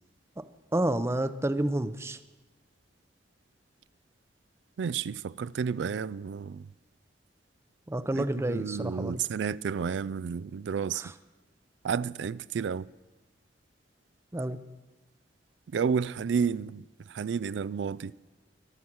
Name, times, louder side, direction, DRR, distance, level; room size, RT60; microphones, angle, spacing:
voice 1, 0.7-2.2 7.9-9.2 11.0-11.1 14.3-14.6, right 1 dB, 15° right, 0.6 m, -29 dB
voice 2, 4.8-6.7 8.1-11.0 11.8-12.9 15.7-18.1, right 6 dB, 75° right, 0.4 m, -31 dB
21.5 x 7.2 x 6.1 m
head